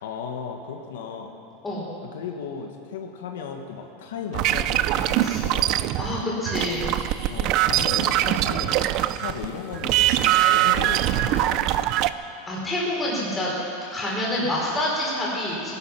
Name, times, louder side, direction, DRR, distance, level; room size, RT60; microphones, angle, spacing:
voice 1, 0.0-1.4 2.1-5.9 7.3-11.9, left 6 dB, 85° left, 3 dB, 1.6 m, -35 dB
sound 1, 4.3-9.5 9.7-12.1, right 13 dB, 35° right, 0.4 m, -22 dB
voice 2, 6.0-6.9 12.5-13.5 13.9-15.7, left 1 dB, 10° left, -5 dB, 4.1 m, -27 dB
20.5 x 11.5 x 5.9 m, 2.7 s
supercardioid pair, 170°, 0 cm